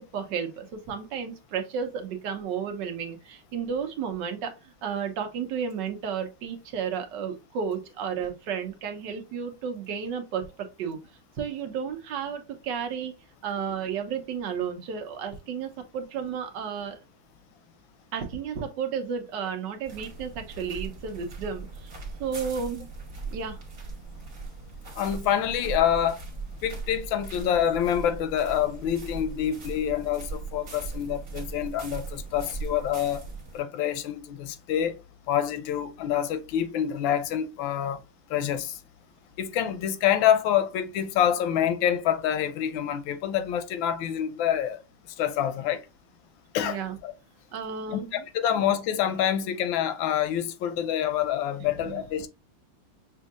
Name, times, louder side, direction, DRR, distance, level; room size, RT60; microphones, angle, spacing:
voice 1, 0.1-10.5 10.8-11.0 11.4-13.1 13.4-17.0 18.1-21.9 22.2-22.9 23.3-23.6 46.6-47.0 47.5-48.2 51.6-52.0, right 7 dB, 70° right, 1.4 m, -32 dB
sound 1, 19.8-33.6, right 4 dB, 45° right, 1.6 m, -39 dB
voice 2, 25.0-26.2 26.6-33.2 33.5-35.0 35.3-38.0 38.3-38.8 39.4-44.8 45.2-45.8 46.5-47.1 47.9-52.3, left 10 dB, 90° left, 1.4 m, -26 dB
6.2 x 2.7 x 2.4 m
omnidirectional pair, 2.1 m